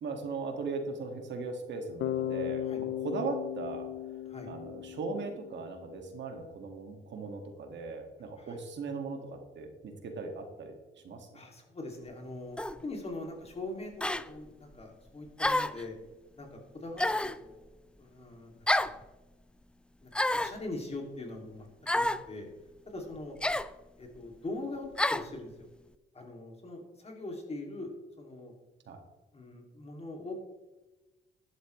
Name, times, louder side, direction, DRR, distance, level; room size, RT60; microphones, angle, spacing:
voice 1, 0.0-4.2 4.5-10.8 11.0-11.3 28.9-29.0, right 4 dB, 65° right, 4 dB, 1.9 m, -38 dB
Bass guitar, 2.0-6.0, left 12 dB, 70° left, 0.5 m, -36 dB
voice 2, 11.3-13.9 14.2-16.0 16.4-17.0 17.4-17.6 18.0-19.0 20.0-21.7 21.9-22.5 22.9-23.4 24.0-25.7 26.1-27.9 28.2-28.5 29.3-30.3, left 2 dB, 30° left, 2 dB, 2.5 m, -42 dB
sound 1, 12.6-12.8 14.0-14.3 15.4-15.8 17.0-17.4 18.7-19.0 20.1-20.6 21.9-22.2 23.4-23.7 25.0-25.3, left 1 dB, 5° left, 0.4 m, -28 dB
11.5 x 11.0 x 3.2 m, 1.1 s
cardioid pair, 90°, 20 cm